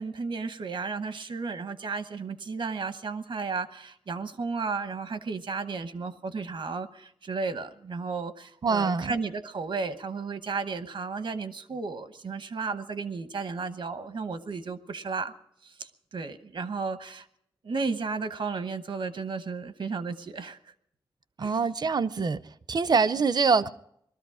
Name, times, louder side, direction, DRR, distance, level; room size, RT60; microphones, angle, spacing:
voice 1, 0.0-15.3 15.6-17.3 17.6-20.6 21.4-21.6, right 4 dB, 70° right, 1.0 m, -33 dB
voice 2, 8.6-9.1 21.4-22.4 22.7-23.7, right 5 dB, 50° right, 0.6 m, -24 dB
20.5 x 13.0 x 4.9 m
wide cardioid pair, 105°, 9 cm